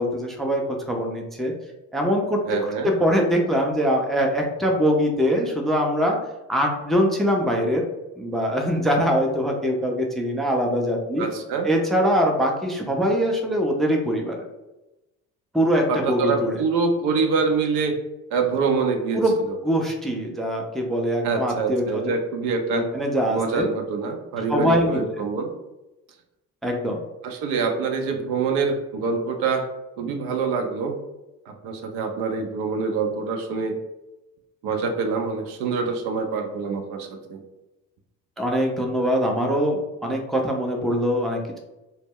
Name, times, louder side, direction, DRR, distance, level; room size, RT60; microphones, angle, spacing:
voice 1, 0.0-1.5 1.9-6.2 6.5-7.8 8.2-11.3 11.6-14.4 15.5-16.6 19.1-19.4 19.6-22.1 22.9-23.7 24.5-25.0 26.6-27.0 38.4-41.6, equal, ahead, 1 dB, 0.4 m, -23 dB
voice 2, 2.5-2.9 11.2-11.7 15.9-17.9 18.3-19.2 19.5-19.6 21.2-22.8 23.3-25.5 27.2-29.7 30.0-31.0 31.5-33.8 34.6-37.4, right 4 dB, 75° right, 4 dB, 0.5 m, -25 dB
2.1 x 2.0 x 3.5 m, 1.0 s
hypercardioid pair, 55°, 41 cm